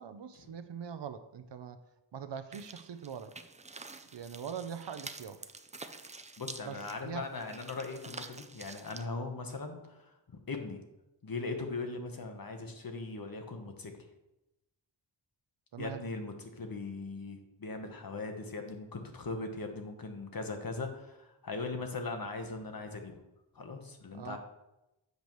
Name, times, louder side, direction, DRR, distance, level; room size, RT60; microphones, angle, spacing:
voice 1, 0.0-1.8 2.1-3.3 4.1-5.4 6.6-7.3 15.7-16.0 24.1-24.4, right 7 dB, 65° right, 11 dB, 0.6 m, -42 dB
sound 1, 2.5-9.1, right 3 dB, 15° right, 0.4 m, -48 dB
voice 2, 6.4-10.8 11.2-13.9 15.8-23.2 23.5-24.4, left 3 dB, 50° left, 5 dB, 1.1 m, -39 dB
8.1 x 6.8 x 3.1 m, 0.93 s
wide cardioid pair, 80°, 46 cm